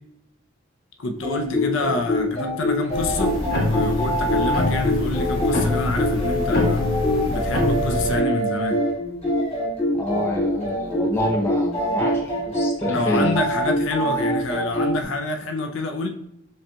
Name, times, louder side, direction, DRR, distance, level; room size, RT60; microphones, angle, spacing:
voice 1, 1.0-6.8 7.3-8.8 12.9-16.1, left 2 dB, 70° left, 5 dB, 0.5 m, -27 dB
sound 1, 1.1-15.0, left 1 dB, 30° left, 1.5 m, -24 dB
sound 2, 2.9-8.2, left 1 dB, 50° left, 1.1 m, -25 dB
voice 2, 10.0-13.4, left 1 dB, 10° left, -2 dB, 0.6 m, -27 dB
7.5 x 2.9 x 2.2 m, 0.78 s
head